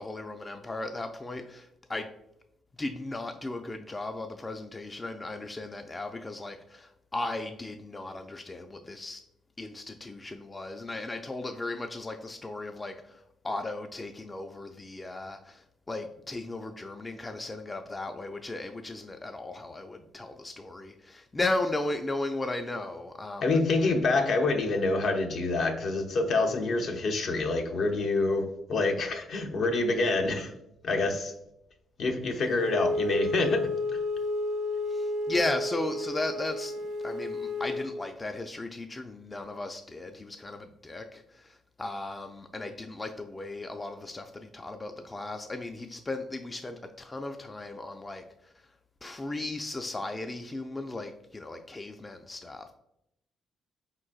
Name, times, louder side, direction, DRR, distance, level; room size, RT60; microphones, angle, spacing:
voice 1, 0.0-2.1 2.8-9.2 9.6-23.9 34.9-48.7 49.0-52.7, left 2 dB, 20° left, 6 dB, 0.3 m, -36 dB
voice 2, 23.4-30.5 30.8-31.3 32.0-33.6, left 3 dB, 60° left, 4 dB, 0.6 m, -27 dB
Wind instrument woodwind instrument, 32.6-37.9, left 2 dB, 75° right, 0.7 m, -31 dB
4.4 x 3.8 x 2.3 m, 0.81 s
cardioid pair, 90°, 0 cm